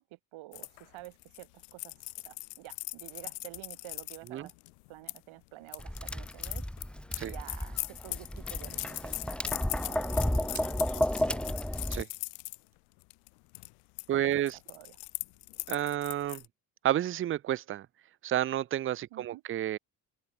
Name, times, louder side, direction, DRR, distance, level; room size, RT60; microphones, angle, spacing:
voice 1, 0.0-4.5 4.9-6.7 7.2-11.5 14.1-15.0 19.1-19.4, right 18 dB, 70° right, 3.4 m, -50 dB
sound 1, 0.5-5.2 5.7-12.6 13.0-13.3 13.5-14.1 14.3-16.4, left 40 dB or more, 80° left, 0.9 m, -40 dB
Tap, 5.8-12.0, left 1 dB, ahead, 1.0 m, -32 dB
sound 2, 7.6-7.7 8.0-8.1 8.7-8.8 10.3-12.4 12.7-12.9 13.2-13.3 14.7-14.8, right 7 dB, 45° right, 7.3 m, -50 dB
voice 2, 14.1-14.5 15.7-16.4 16.8-17.9 18.2-19.8, right 12 dB, 30° right, 0.4 m, -30 dB
hypercardioid pair, 55°, 49 cm